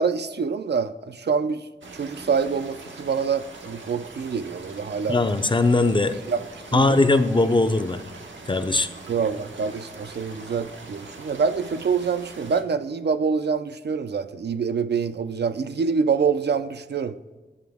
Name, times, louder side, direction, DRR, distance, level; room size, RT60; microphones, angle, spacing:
voice 1, 0.0-5.2 6.3-6.4 6.7-7.0 9.1-17.2, right 5 dB, 60° right, 0.4 m, -26 dB
sound 1, 1.8-12.6, right 3 dB, 90° right, 1.0 m, -42 dB
voice 2, 5.1-6.2 6.7-8.0 8.5-8.9, left 2 dB, 25° left, 0.5 m, -20 dB
11.0 x 6.8 x 3.5 m
wide cardioid pair, 95°, 19 cm